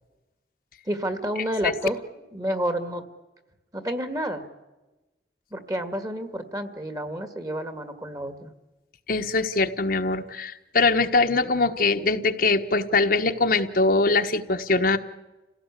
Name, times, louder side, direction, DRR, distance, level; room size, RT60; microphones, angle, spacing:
voice 1, 0.9-2.0 2.3-3.0 3.7-4.4 5.5-8.5, right 1 dB, 20° right, 9 dB, 1.9 m, -29 dB
voice 2, 9.1-15.0, left 3 dB, 55° left, 5 dB, 1.3 m, -22 dB
28.0 x 17.0 x 8.3 m, 1.1 s
head